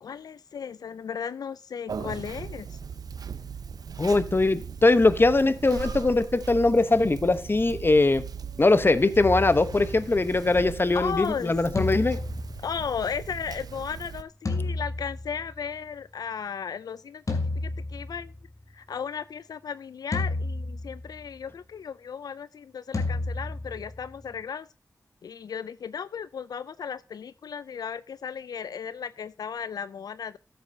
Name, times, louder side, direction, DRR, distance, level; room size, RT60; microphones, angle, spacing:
voice 1, 0.0-2.8 10.9-11.6 12.6-18.3 18.7-24.7 25.2-30.4, left 7 dB, 75° left, 0.3 m, -35 dB
Conversation, 1.9-14.2, right 6 dB, 75° right, 0.6 m, -39 dB
voice 2, 4.0-8.2 8.6-12.2, left 2 dB, 35° left, 0.9 m, -21 dB
sound 1, 9.2-10.5 11.7-13.4 14.4-15.8 17.3-18.6 20.1-21.3 22.9-24.4, left 2 dB, 55° left, 2.5 m, -32 dB
13.5 x 8.0 x 2.7 m
cardioid pair, 60°, 7 cm